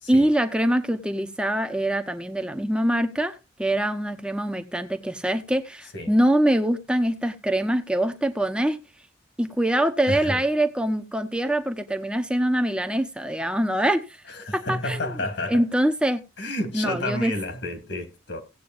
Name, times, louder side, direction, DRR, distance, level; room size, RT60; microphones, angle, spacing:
voice 1, 0.1-8.8 9.4-14.0 14.5-15.1 15.5-16.2 16.7-17.3, right 1 dB, 5° right, 0.9 m, -24 dB
voice 2, 10.1-10.4 14.3-15.6 16.4-18.4, left 1 dB, 65° left, 2.0 m, -30 dB
17.5 x 8.4 x 2.5 m
head